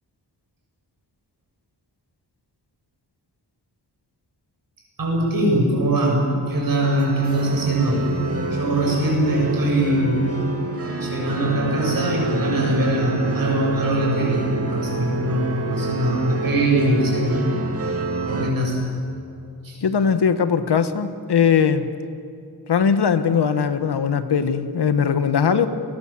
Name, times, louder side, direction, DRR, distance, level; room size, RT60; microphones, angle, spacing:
voice 1, 5.0-8.1 8.5-10.3 11.0-17.4 18.3-18.7 19.6-19.8, right 1 dB, 55° right, -1 dB, 7.5 m, -22 dB
sound 1, 6.8-18.5, right 3 dB, 35° right, 2.4 m, -28 dB
voice 2, 19.8-21.9 22.7-25.7, left 7 dB, 75° left, 10 dB, 1.4 m, -20 dB
29.5 x 21.5 x 7.5 m, 2.5 s
wide cardioid pair, 170°, 41 cm